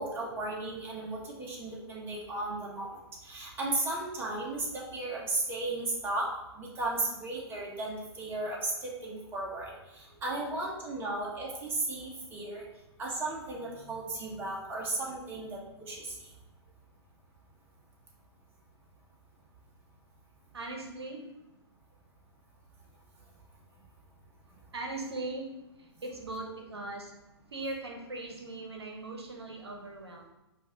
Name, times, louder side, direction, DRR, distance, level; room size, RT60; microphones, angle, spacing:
voice 1, 0.0-2.9 3.2-6.3 6.6-9.7 10.2-12.6 13.0-16.1, right 2 dB, 15° right, -3 dB, 0.9 m, -35 dB
voice 2, 20.5-21.3 24.7-27.2 27.5-30.3, right 2 dB, 70° right, 2 dB, 0.8 m, -40 dB
5.2 x 2.5 x 3.7 m, 0.93 s
figure-of-eight pair, 115°, 14 cm